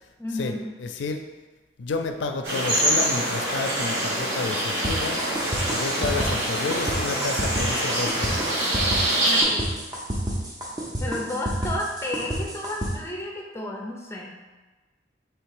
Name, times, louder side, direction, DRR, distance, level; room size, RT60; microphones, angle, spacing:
voice 1, 0.2-0.7 9.3-9.7 11.0-14.4, left 1 dB, 15° left, -1 dB, 0.5 m, -32 dB
voice 2, 0.8-1.2 1.8-5.2 5.7-8.4, left 3 dB, 90° left, 5 dB, 0.4 m, -30 dB
sound 1, 2.4-9.4, right 1 dB, 85° right, 1.2 m, -25 dB
sound 2, 4.8-12.9, equal, 20° right, 0.7 m, -29 dB
3.3 x 3.3 x 4.8 m, 1.2 s
head